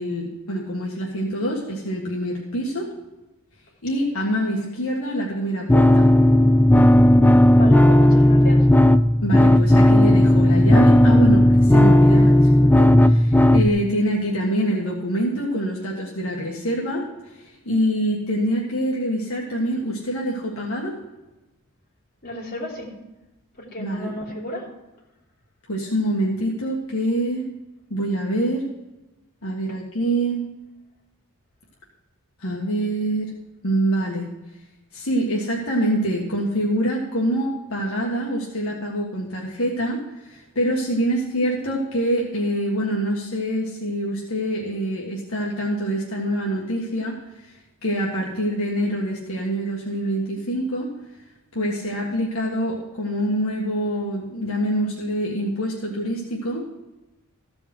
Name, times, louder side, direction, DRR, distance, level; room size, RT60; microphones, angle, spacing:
voice 1, 0.0-2.9 3.8-6.1 9.2-17.0 17.3-20.9 23.8-24.1 25.7-27.5 27.9-28.7 29.4-30.5 32.4-33.3 33.6-34.3 34.9-47.2 47.8-50.9 51.5-56.7, equal, 80° left, -4 dB, 1.7 m, -25 dB
sound 1, 5.7-13.7, left 1 dB, 10° left, 0.3 m, -14 dB
voice 2, 7.5-8.7 22.2-22.9 23.6-24.7, left 1 dB, 45° left, -4 dB, 3.4 m, -33 dB
14.5 x 5.3 x 6.0 m, 1.0 s
head